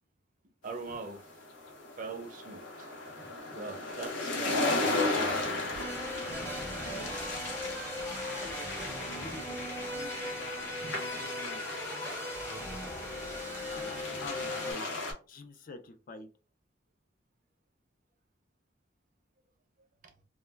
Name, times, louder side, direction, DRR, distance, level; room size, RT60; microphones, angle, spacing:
voice 1, 0.6-1.2 2.0-2.9 3.5-5.0 20.0-20.1, right 3 dB, 45° right, 0.5 m, -42 dB
sound 1, 0.9-15.1, left 2 dB, 90° left, 0.8 m, -36 dB
sound 2, 4.9-14.7, left 1 dB, 15° left, 0.8 m, -39 dB
voice 2, 9.0-11.6 13.7-14.9 15.3-16.3, left 3 dB, 45° left, 0.4 m, -47 dB
2.2 x 2.1 x 3.2 m
head